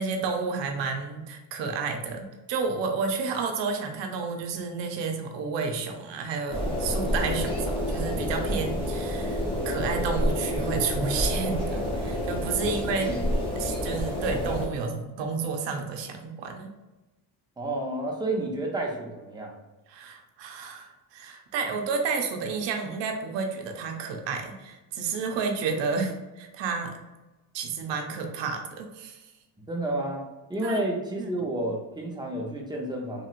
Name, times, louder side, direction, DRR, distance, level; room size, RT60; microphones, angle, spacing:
voice 1, 0.0-13.1 13.6-16.7 19.9-27.0 27.5-29.3 30.6-30.8 31.2-31.3, right 5 dB, 85° right, 4 dB, 0.6 m, -31 dB
sound 1, 6.5-14.7, left 1 dB, 10° left, 0.9 m, -28 dB
voice 2, 12.6-13.2 17.6-19.5 29.7-33.3, right 1 dB, 10° right, 0 dB, 0.6 m, -31 dB
2.9 x 2.9 x 2.4 m, 1.1 s
cardioid pair, 115°, 43 cm